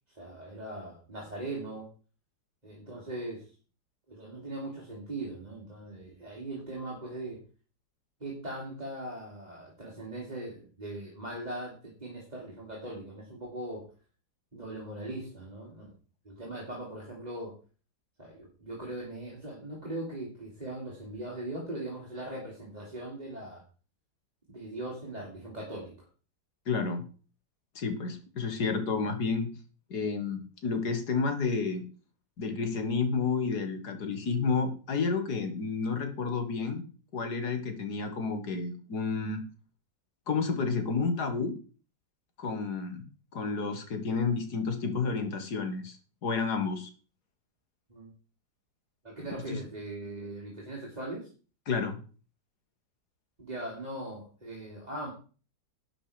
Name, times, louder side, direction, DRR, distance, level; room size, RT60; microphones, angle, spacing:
voice 1, 0.1-1.9 2.6-3.5 4.1-7.4 8.2-13.8 14.5-15.9 16.2-17.5 18.2-23.6 24.5-25.9 47.9-48.1 49.0-51.3 53.4-55.1, right 1 dB, 20° right, -4 dB, 2.9 m, -40 dB
voice 2, 26.7-27.0 27.8-29.5 29.9-31.8 32.4-36.8 37.1-39.4 40.3-41.6 42.4-43.1 43.3-46.0 46.2-46.9 49.5-49.6 51.7-52.0, left 4 dB, 65° left, 7 dB, 2.2 m, -30 dB
12.0 x 6.9 x 5.0 m, 0.37 s
omnidirectional pair, 1.9 m